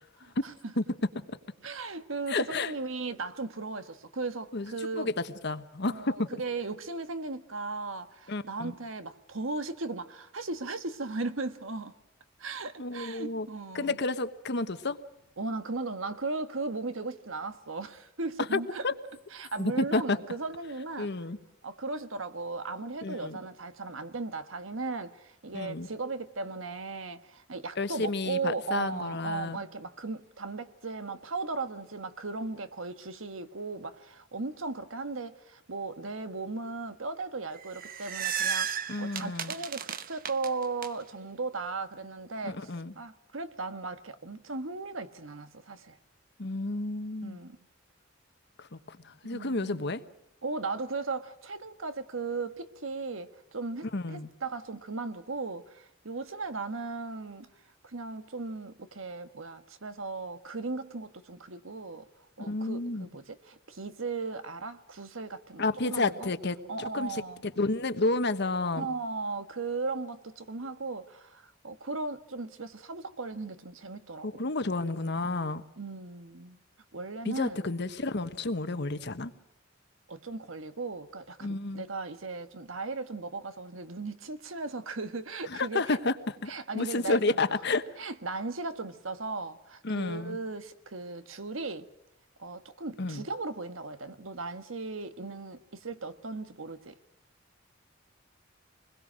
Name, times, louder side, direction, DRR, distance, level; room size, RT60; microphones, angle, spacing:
voice 1, 0.2-0.7 1.6-5.2 5.9-12.0 12.4-14.0 15.4-18.8 19.3-21.1 21.6-46.0 47.2-47.6 49.3-49.9 50.4-57.5 57.8-62.1 62.4-66.3 66.7-67.4 68.7-74.5 75.8-76.6 76.9-77.7 80.1-86.0 86.5-87.7 88.0-91.9 92.4-97.0, right 3 dB, 90° right, 1.5 m, -37 dB
voice 2, 2.3-2.7 4.5-5.1 5.4-6.3 8.3-8.7 12.8-13.5 13.7-15.0 18.5-18.9 19.6-20.2 21.0-21.4 23.0-23.4 25.5-25.9 27.8-29.6 38.9-39.5 42.4-42.9 46.4-47.4 48.6-50.0 53.9-54.3 62.4-63.1 65.6-66.6 66.9-68.9 74.2-75.6 77.2-79.3 81.4-81.8 85.5-87.8 89.8-90.4 93.0-93.2, left 3 dB, 60° left, 1.3 m, -31 dB
sound 1, 37.6-40.9, right 8 dB, 45° right, 1.0 m, -33 dB
25.5 x 21.0 x 6.4 m
head